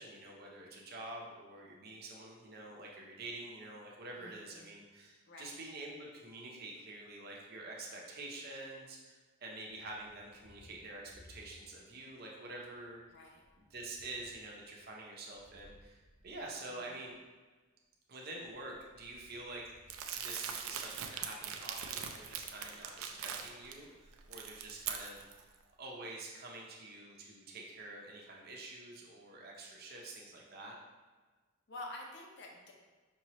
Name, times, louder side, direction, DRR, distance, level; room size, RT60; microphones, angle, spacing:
voice 1, 0.0-11.0 11.3-13.0 13.7-17.2 18.1-19.6 20.1-25.2 25.8-30.8, right 2 dB, 45° right, -2 dB, 0.7 m, -47 dB
voice 2, 4.2-4.6 5.3-5.5 13.1-13.4 16.8-17.0 31.7-32.7, left 2 dB, 55° left, 0 dB, 0.7 m, -48 dB
Thunder, 9.6-12.0 12.4-17.2 18.2-20.9, left 1 dB, 15° left, 0.4 m, -64 dB
Crumpling crinkling, 19.9-23.7 24.1-25.4, right 7 dB, 85° right, 0.4 m, -41 dB
5.3 x 2.9 x 3.0 m, 1.3 s
head